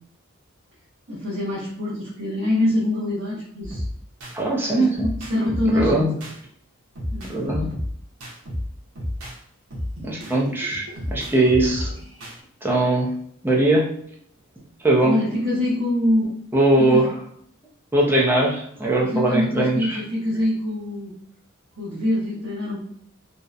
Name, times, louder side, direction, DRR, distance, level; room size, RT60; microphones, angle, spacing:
voice 1, 1.1-3.8 4.7-4.9 5.2-6.1 7.1-7.7 15.0-16.3 16.8-17.0 19.0-21.1 21.8-22.8, left 1 dB, 60° right, -8 dB, 0.7 m, -24 dB
sound 1, 3.6-4.4 5.0-6.4 7.0-9.4 9.7-12.4, left 1 dB, 90° right, 0.7 m, -31 dB
voice 2, 4.3-5.1 5.7-6.1 7.3-7.7 10.0-11.9 12.6-13.1 13.4-13.9 14.8-15.1 16.5-17.1 17.9-20.0, right 2 dB, 10° right, -3 dB, 0.4 m, -20 dB
2.7 x 2.0 x 2.3 m, 0.66 s
head